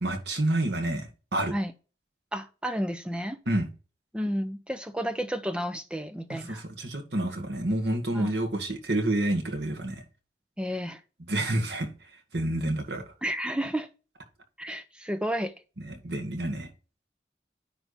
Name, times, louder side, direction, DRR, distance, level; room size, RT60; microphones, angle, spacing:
voice 1, 0.0-1.5 3.5-3.7 6.3-10.0 11.3-11.9 12.3-13.0 15.9-16.7, right 1 dB, 80° right, 1.7 m, -29 dB
voice 2, 2.3-3.4 4.1-6.6 8.1-8.3 10.6-11.0 13.2-13.9 14.6-15.5, equal, 5° right, 0.6 m, -31 dB
10.0 x 3.4 x 4.1 m
head